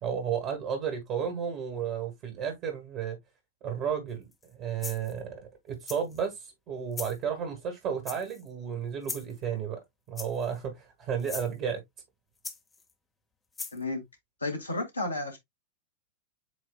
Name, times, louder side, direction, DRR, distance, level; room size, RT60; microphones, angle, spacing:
voice 1, 0.0-3.2 3.6-9.8 10.1-11.8, right 7 dB, 40° right, 1.6 m, -33 dB
sound 1, 4.3-4.5 4.8-5.2 5.9-6.3 6.9-7.2 8.1-8.5 9.0-9.4 10.2-10.6 11.2-11.5 12.4-12.9 13.6-13.8, left 4 dB, 15° left, 0.9 m, -39 dB
voice 2, 13.7-14.0 14.4-15.4, left 2 dB, 80° left, 1.8 m, -32 dB
8.0 x 2.7 x 2.3 m
figure-of-eight pair, 90°, 0 cm